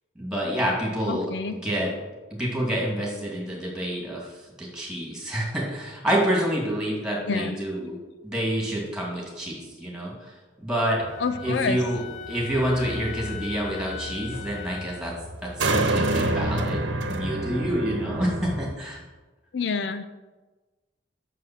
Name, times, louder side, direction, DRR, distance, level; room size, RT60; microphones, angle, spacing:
voice 1, 0.2-1.9 2.3-8.0 8.2-11.0 11.4-12.0 12.3-15.1 15.4-19.0, equal, 5° right, -3 dB, 2.5 m, -28 dB
voice 2, 1.1-1.5 7.3-7.6 11.2-11.8 19.5-20.1, left 5 dB, 70° left, 10 dB, 0.5 m, -27 dB
sound 1, 11.0-18.7, right 2 dB, 85° right, 1.1 m, -29 dB
Wind instrument woodwind instrument, 11.1-15.2, left 11 dB, 40° left, 0.9 m, -40 dB
7.6 x 6.6 x 7.6 m, 1.2 s
head